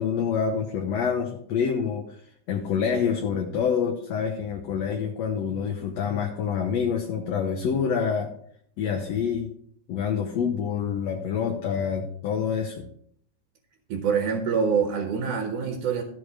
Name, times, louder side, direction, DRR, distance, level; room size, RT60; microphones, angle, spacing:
voice 1, 0.0-2.0 2.5-8.3 8.8-9.5 9.9-12.8, left 7 dB, 65° left, 2 dB, 2.0 m, -27 dB
voice 2, 13.9-16.0, right 6 dB, 75° right, 3 dB, 2.8 m, -25 dB
13.5 x 6.9 x 4.8 m, 0.65 s
omnidirectional pair, 3.7 m